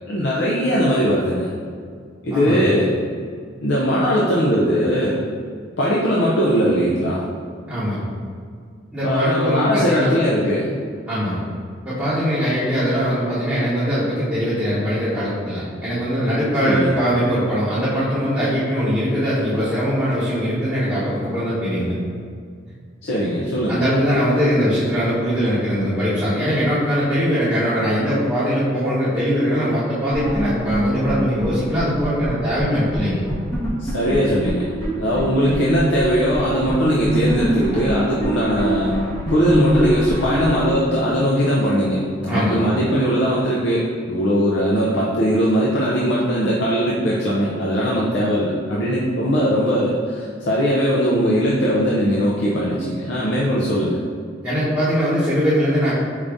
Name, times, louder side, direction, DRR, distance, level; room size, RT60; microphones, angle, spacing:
voice 1, 0.1-1.5 2.2-2.9 3.6-5.2 5.8-7.2 9.0-10.8 16.6-16.9 23.0-23.8 33.8-34.7 35.0-38.9 39.3-54.0, equal, 70° left, -6 dB, 0.5 m, -20 dB
voice 2, 2.3-2.7 7.7-8.0 8.9-10.1 11.1-11.4 11.8-21.9 23.7-33.2 42.3-42.6 54.4-55.9, equal, 10° right, -13 dB, 0.9 m, -21 dB
sound 1, 30.1-32.7 32.9-33.0 33.3-34.9 35.2-35.3 35.5-40.7, right 1 dB, 15° left, 0.6 m, -23 dB
4.9 x 2.6 x 3.4 m, 2.1 s
head